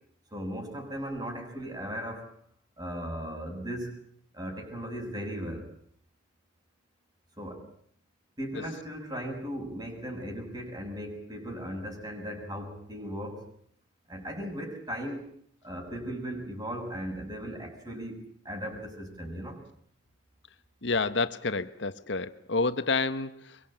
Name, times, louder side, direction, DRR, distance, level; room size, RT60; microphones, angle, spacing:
voice 1, 0.3-2.3 2.8-3.9 4.3-5.7 7.4-7.7 8.4-13.5 14.1-15.3 15.6-19.6, equal, 25° right, 3 dB, 7.1 m, -37 dB
voice 2, 20.8-23.6, left 3 dB, 70° left, 12 dB, 1.2 m, -29 dB
24.0 x 23.0 x 9.0 m, 0.63 s
head